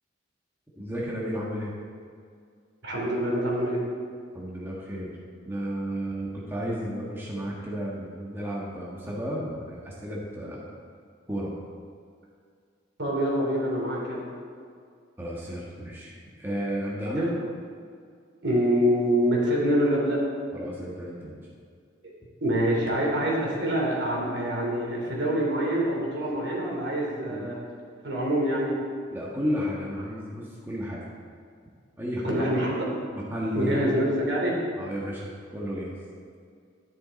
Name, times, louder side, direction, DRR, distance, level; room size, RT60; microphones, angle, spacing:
voice 1, 0.8-1.7 4.3-5.2 5.4-10.6 11.3-11.5 15.2-17.3 20.5-21.5 27.3-27.4 29.1-31.0 32.0-32.4 33.1-33.9 34.8-35.9, equal, 10° right, -5 dB, 1.4 m, -32 dB
voice 2, 2.8-3.8 13.0-14.3 17.2-17.3 18.4-20.2 22.0-22.1 22.4-27.6 28.0-28.8 32.2-32.9 33.5-34.6, equal, 70° right, -3 dB, 2.9 m, -25 dB
11.0 x 10.0 x 4.1 m, 2.2 s
head